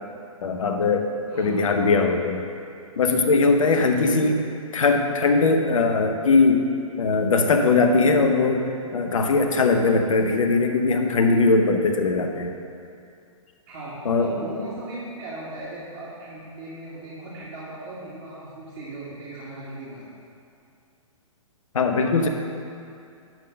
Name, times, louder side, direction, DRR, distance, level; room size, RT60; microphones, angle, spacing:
voice 1, 0.4-1.1 1.4-2.4 3.0-4.4 4.7-6.7 7.0-8.6 8.9-12.5 14.0-14.3 21.7-22.3, left 3 dB, 65° left, 5 dB, 0.9 m, -20 dB
voice 2, 3.6-4.3 13.7-20.0, right 2 dB, 50° right, -9 dB, 2.2 m, -37 dB
10.5 x 3.8 x 6.5 m, 2.5 s
figure-of-eight pair, 120°, 18 cm